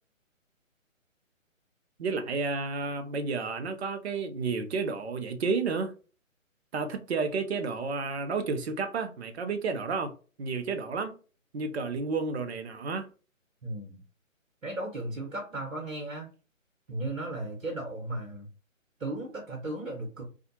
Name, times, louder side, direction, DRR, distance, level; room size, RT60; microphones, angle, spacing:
voice 1, 2.0-5.9 6.7-10.1 10.4-11.2 11.5-13.1, right 4 dB, 55° right, 0.6 m, -31 dB
voice 2, 13.6-14.0 14.6-16.3 16.9-18.5 19.0-20.2, right 2 dB, 75° right, 1.0 m, -35 dB
2.6 x 2.4 x 2.6 m
figure-of-eight pair, 145°, 40 cm